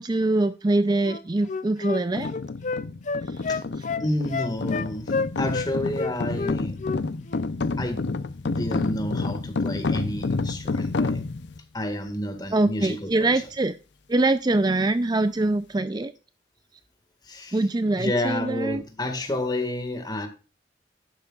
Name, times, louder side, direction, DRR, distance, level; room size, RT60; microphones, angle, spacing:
voice 1, 0.0-2.3 12.5-13.7 14.1-16.1 17.5-18.8, right 2 dB, 25° right, 0.4 m, -23 dB
Wind instrument woodwind instrument, 1.0-5.7 6.0-7.0 7.3-7.5, left 4 dB, 45° left, 0.5 m, -29 dB
sound 1, 2.1-11.6, left 3 dB, 85° left, 0.7 m, -29 dB
voice 2, 4.0-6.8 7.1-7.2 7.8-8.1 8.4-11.2 11.7-13.3 17.2-17.6 18.0-20.3, left 1 dB, 25° left, 1.8 m, -30 dB
11.5 x 10.0 x 2.4 m
head